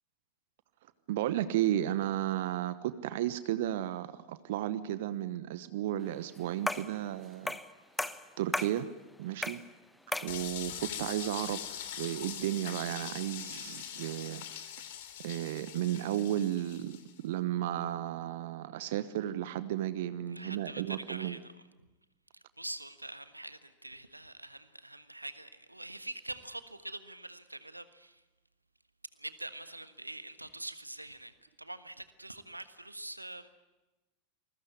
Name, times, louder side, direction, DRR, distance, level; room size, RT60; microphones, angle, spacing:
voice 1, 1.1-7.6 8.4-8.9 9.2-9.6 10.2-14.4 15.2-17.0 17.2-21.4, right 12 dB, 55° right, 1.1 m, -33 dB
sound 1, 6.7-7.0 7.5-7.7 8.0-8.8 9.4-9.7 10.1-10.4, left 1 dB, 5° left, 1.1 m, -34 dB
sound 2, 10.3-17.1, left 10 dB, 55° left, 3.0 m, -42 dB
voice 2, 20.3-21.5 22.3-28.2 29.2-31.3 31.6-33.6, right 1 dB, 85° right, 1.4 m, -44 dB
28.0 x 21.5 x 9.6 m
figure-of-eight pair, 90°, 0 cm